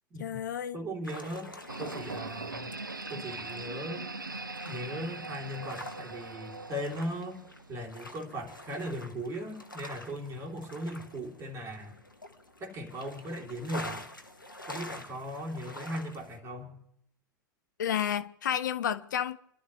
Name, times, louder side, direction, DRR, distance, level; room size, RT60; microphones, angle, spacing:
voice 1, 0.2-0.8 17.8-19.4, left 9 dB, 70° left, 0.7 m, -31 dB
voice 2, 0.7-1.5 1.8-2.7 3.1-4.1 4.6-7.4 7.7-11.9 12.6-14.1 14.7-16.8, equal, 25° right, 3.1 m, -38 dB
sound 1, 1.0-16.4, left 1 dB, 90° left, 1.2 m, -47 dB
sound 2, 1.7-7.7, right 3 dB, 90° right, 0.6 m, -40 dB
29.0 x 12.0 x 3.2 m
figure-of-eight pair, 90°, 11 cm